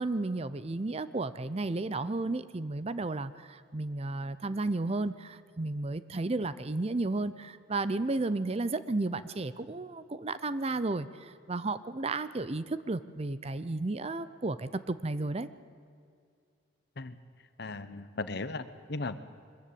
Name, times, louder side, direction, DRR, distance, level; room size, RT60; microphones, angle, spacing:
voice 1, 0.0-15.5, right 2 dB, 35° right, 14 dB, 0.6 m, -33 dB
voice 2, 17.6-19.2, left 3 dB, 60° left, 12 dB, 1.0 m, -37 dB
22.0 x 14.5 x 8.6 m, 2.3 s
head